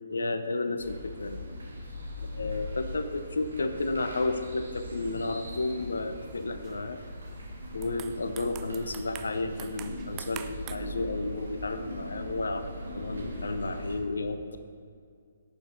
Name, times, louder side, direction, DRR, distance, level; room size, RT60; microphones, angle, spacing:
voice 1, 0.1-1.4 2.3-7.0 7.7-14.6, left 2 dB, 65° left, 9 dB, 0.8 m, -32 dB
sound 1, 0.8-14.0, left 1 dB, 70° right, 2.7 m, -40 dB
sound 2, 5.4-5.8 6.2-6.8 7.2-7.4 7.7-10.8, right 11 dB, 20° right, 0.6 m, -45 dB
17.5 x 7.2 x 4.4 m, 2.2 s
figure-of-eight pair, 130°, 0 cm